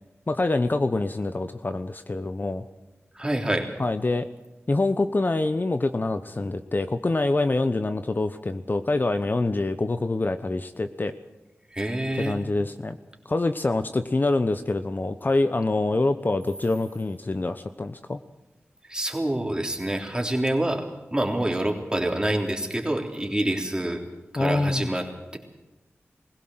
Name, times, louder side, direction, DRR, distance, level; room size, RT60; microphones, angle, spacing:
voice 1, 0.3-2.6 3.8-4.3 4.7-11.1 12.2-13.0 13.2-18.2 24.4-24.9, left 2 dB, 40° left, 10 dB, 0.9 m, -25 dB
voice 2, 3.1-3.7 11.7-12.4 18.9-24.0 24.3-25.1, right 1 dB, 15° right, 2 dB, 3.4 m, -26 dB
20.5 x 16.5 x 7.9 m, 1.0 s
wide cardioid pair, 60°, 5 cm